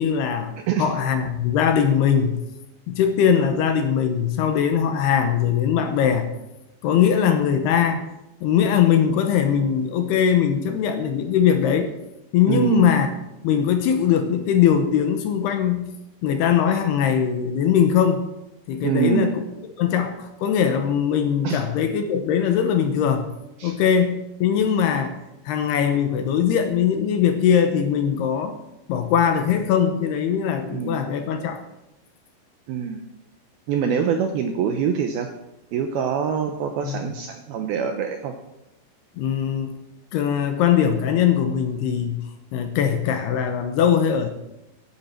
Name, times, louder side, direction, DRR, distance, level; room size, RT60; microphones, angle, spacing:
voice 1, 0.0-0.5 0.8-2.4 2.9-6.3 6.8-8.0 8.4-11.9 12.3-13.1 13.4-15.9 16.2-18.2 18.7-19.4 19.8-23.3 23.6-25.2 25.5-28.6 28.9-31.6 36.8-37.0 39.2-39.8 40.1-44.3, left 8 dB, 70° left, 7 dB, 2.7 m, -21 dB
voice 2, 12.5-12.9 18.8-19.3 21.4-21.6 23.6-23.7 30.7-31.0 32.7-33.0 33.7-35.3 35.7-38.3, right 7 dB, 80° right, 5 dB, 2.3 m, -24 dB
16.5 x 12.0 x 4.4 m, 0.91 s
omnidirectional pair, 5.3 m